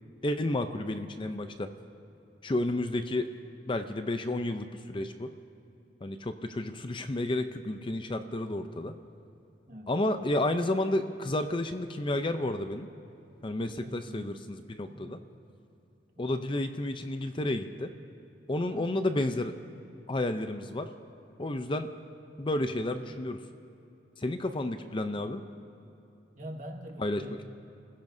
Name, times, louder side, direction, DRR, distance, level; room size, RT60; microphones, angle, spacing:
voice 1, 0.2-1.7 2.4-3.3 3.7-5.3 6.0-8.9 9.9-12.9 13.4-15.2 16.2-17.9 18.5-19.5 20.1-20.9 21.4-21.9 22.4-23.4 24.2-25.4 27.0-27.2, left 1 dB, 30° left, 8 dB, 0.6 m, -31 dB
voice 2, 13.8-14.4 14.9-15.3 16.2-16.3 18.6-18.9 26.3-27.4, equal, 45° right, 2 dB, 1.7 m, -44 dB
28.5 x 15.5 x 2.7 m, 2.7 s
head